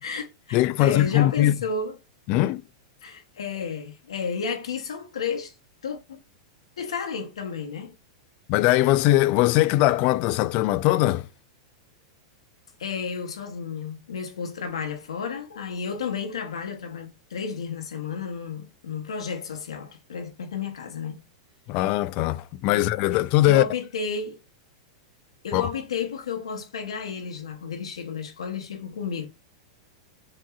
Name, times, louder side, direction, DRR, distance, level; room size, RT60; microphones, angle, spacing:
voice 1, 0.0-2.0 3.0-5.5 5.8-6.2 6.8-7.9 12.8-21.2 22.7-22.9 23.5-24.4 25.4-29.3, left 5 dB, 90° left, 0.8 m, -32 dB
voice 2, 0.5-1.6 2.3-2.6 8.5-11.3 21.7-23.6 25.5-25.7, left 15 dB, 45° left, 0.3 m, -21 dB
5.8 x 2.9 x 2.4 m
hypercardioid pair, 120°, 3 cm